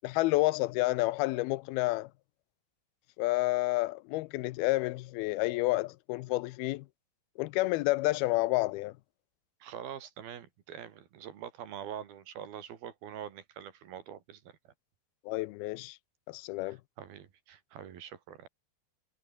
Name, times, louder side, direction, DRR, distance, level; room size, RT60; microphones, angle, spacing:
voice 1, 0.0-2.1 3.2-6.9 7.4-9.0 15.3-16.0 16.3-16.8, left 20 dB, 85° left, 2.6 m, -29 dB
voice 2, 9.6-14.6 16.7-18.5, right 9 dB, 75° right, 4.1 m, -44 dB
omnidirectional pair, 4.4 m